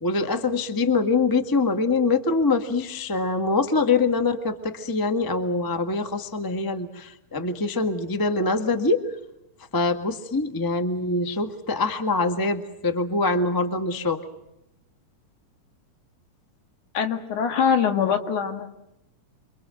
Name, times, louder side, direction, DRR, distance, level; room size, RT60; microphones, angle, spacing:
voice 1, 0.0-9.0 9.7-14.2, left 3 dB, 15° left, 7 dB, 0.8 m, -24 dB
voice 2, 16.9-18.7, left 7 dB, 70° left, 6 dB, 3.4 m, -23 dB
28.0 x 24.0 x 7.7 m, 0.87 s
omnidirectional pair, 3.7 m